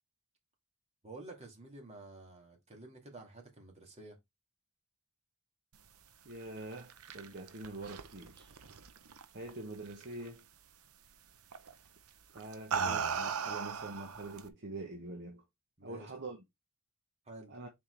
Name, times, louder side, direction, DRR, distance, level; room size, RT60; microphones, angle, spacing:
voice 1, 1.0-4.2 15.8-16.1 17.3-17.5, right 2 dB, 30° right, 2.4 m, -50 dB
voice 2, 6.2-8.5 9.3-10.4 12.3-15.4 15.8-16.4 17.5-17.7, right 2 dB, 50° right, 1.0 m, -45 dB
sound 1, 6.6-9.5 9.9-10.3 11.5-11.7 12.4-14.5, right 6 dB, 80° right, 0.8 m, -37 dB
7.0 x 4.5 x 3.3 m
head